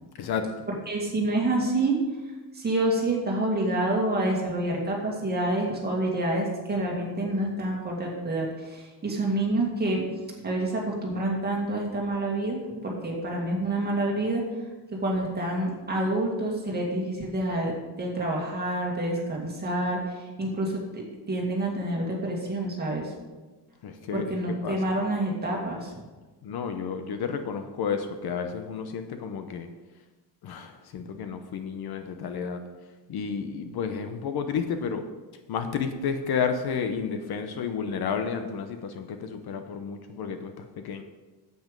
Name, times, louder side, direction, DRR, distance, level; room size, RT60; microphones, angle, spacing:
voice 1, 0.9-2.0 2.5-10.0 10.4-14.4 14.9-23.1 24.1-26.1, right 1 dB, 20° right, -2 dB, 2.2 m, -28 dB
voice 2, 23.8-24.4 24.6-24.8 26.4-29.7 30.4-32.6 33.1-35.0 35.5-41.0, left 6 dB, 60° left, 8 dB, 0.9 m, -31 dB
9.1 x 8.1 x 5.2 m, 1.2 s
cardioid pair, 175°, 43 cm